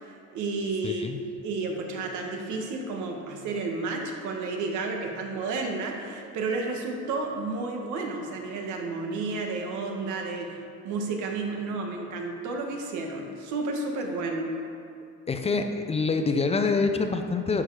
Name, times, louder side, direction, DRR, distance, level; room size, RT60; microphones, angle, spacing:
voice 1, 0.1-1.0 1.4-14.5, right 3 dB, 80° right, 1 dB, 1.5 m, -31 dB
voice 2, 0.8-1.2 15.3-17.6, left 4 dB, 20° left, 6 dB, 0.5 m, -26 dB
11.5 x 6.3 x 4.7 m, 2.4 s
cardioid pair, 150°, 29 cm